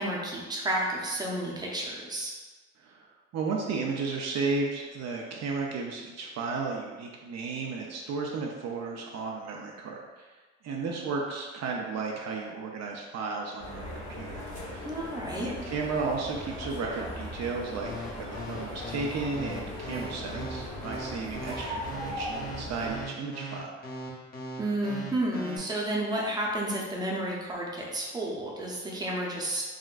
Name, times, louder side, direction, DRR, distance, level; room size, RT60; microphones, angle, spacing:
voice 1, 0.0-2.3 14.8-15.5 24.6-29.7, right 1 dB, 15° right, -3 dB, 0.6 m, -31 dB
voice 2, 3.3-10.0 10.6-14.4 14.7-14.9 15.4-23.7, right 4 dB, 60° right, -1 dB, 0.5 m, -34 dB
sound 1, 13.6-23.1, left 1 dB, 55° left, 1.1 m, -39 dB
sound 2, 17.8-25.6, equal, 30° left, 0.6 m, -39 dB
3.6 x 2.1 x 2.4 m, 1.3 s
cardioid pair, 90°, 30 cm